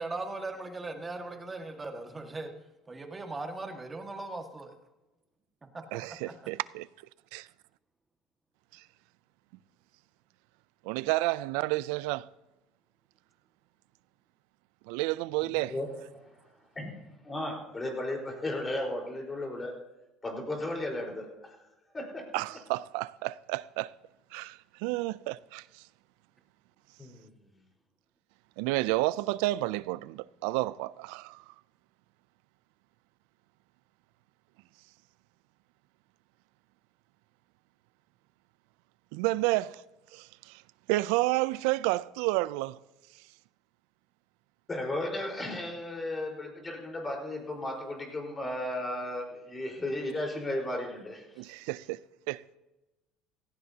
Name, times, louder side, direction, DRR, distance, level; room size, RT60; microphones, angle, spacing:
voice 1, 0.0-2.5 2.9-4.8 5.7-5.8 6.2-6.3, right 2 dB, 20° right, 1.8 m, -38 dB
voice 2, 5.9-6.9 7.3-7.5 8.7-8.8 10.8-12.3 14.9-15.7 22.3-23.9 24.3-25.8 28.6-31.4 39.1-39.8 40.1-40.6 40.9-42.8 51.4-52.0 52.3-52.4, right 19 dB, 85° right, 0.4 m, -30 dB
voice 3, 17.2-19.7 20.2-21.3 21.9-22.3 27.0-27.3 44.7-51.3, left 1 dB, 20° left, 4.5 m, -34 dB
17.0 x 15.5 x 2.9 m
cardioid pair, 120°, 0 cm